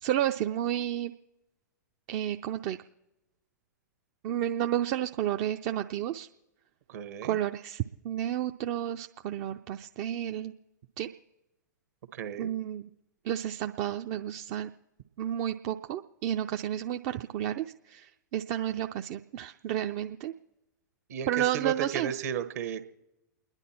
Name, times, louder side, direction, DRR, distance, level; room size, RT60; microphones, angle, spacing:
voice 1, 0.0-1.1 2.1-2.8 4.2-6.3 7.2-10.5 11.0-11.1 12.4-12.9 13.2-14.7 15.2-20.3 21.3-22.1, right 11 dB, 40° right, 6 dB, 0.5 m, -31 dB
voice 2, 6.9-7.4 12.1-12.5 21.1-22.8, right 8 dB, 55° right, 10 dB, 1.3 m, -34 dB
30.0 x 10.5 x 4.4 m, 0.96 s
figure-of-eight pair, 105°, 10 cm